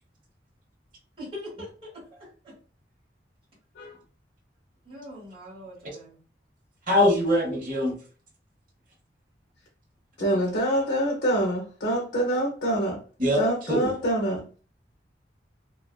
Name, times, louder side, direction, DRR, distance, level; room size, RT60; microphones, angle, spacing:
voice 1, 1.2-1.9 2.4-2.5 4.9-6.2, left 1 dB, 30° right, 1.5 m, -41 dB
voice 2, 6.9-7.9 10.3-10.4 13.2-13.9, left 1 dB, 50° right, 0.9 m, -23 dB
voice 3, 10.2-13.0 13.4-14.6, right 1 dB, 70° left, 0.6 m, -25 dB
2.5 x 2.3 x 2.2 m
head